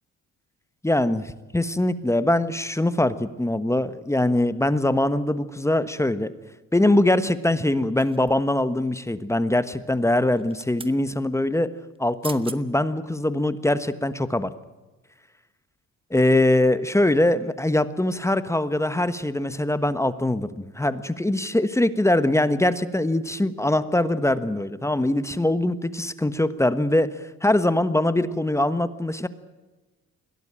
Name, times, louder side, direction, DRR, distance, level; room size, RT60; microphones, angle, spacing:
voice 1, 0.8-6.3 6.7-11.7 12.0-14.5 16.1-29.3, left 1 dB, 10° left, 13 dB, 1.3 m, -22 dB
sound 1, 8.0-8.6 10.3-11.0 12.0-12.1 12.2-12.6 13.2-13.3, right 3 dB, 15° right, 1.4 m, -40 dB
22.0 x 17.0 x 9.0 m, 1.2 s
cardioid pair, 90°, 30 cm